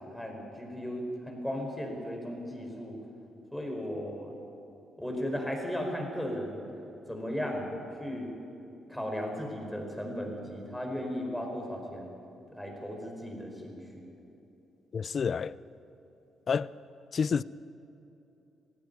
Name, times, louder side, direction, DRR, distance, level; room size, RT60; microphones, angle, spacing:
voice 1, 0.0-3.0 3.5-4.4 5.0-6.6 7.1-7.7 8.0-8.3 8.9-12.1 12.6-14.0, equal, ahead, 4.9 m, -36 dB
voice 2, 14.9-15.5 16.5-16.7 17.1-17.4, left 6 dB, 45° left, 0.5 m, -28 dB
18.0 x 15.0 x 9.5 m
cardioid pair, 90°, 0 cm